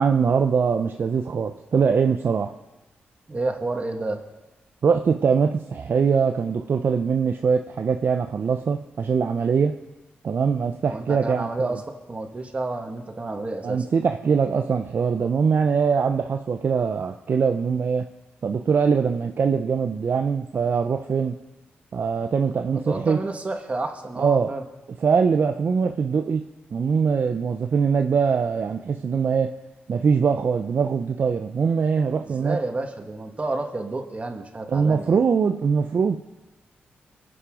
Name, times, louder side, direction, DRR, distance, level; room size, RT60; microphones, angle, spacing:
voice 1, 0.0-2.5 4.8-9.8 10.2-11.7 13.6-18.1 18.4-21.3 21.9-23.2 24.2-24.5 25.0-26.4 26.7-29.5 29.9-32.6 34.7-36.2, right 6 dB, 60° right, 5 dB, 0.7 m, -22 dB
voice 2, 3.3-4.2 10.9-13.9 22.7-24.6 32.2-35.2, right 2 dB, 35° right, 3 dB, 2.3 m, -30 dB
22.5 x 8.8 x 5.1 m, 1.1 s
cardioid pair, 65°, 4 cm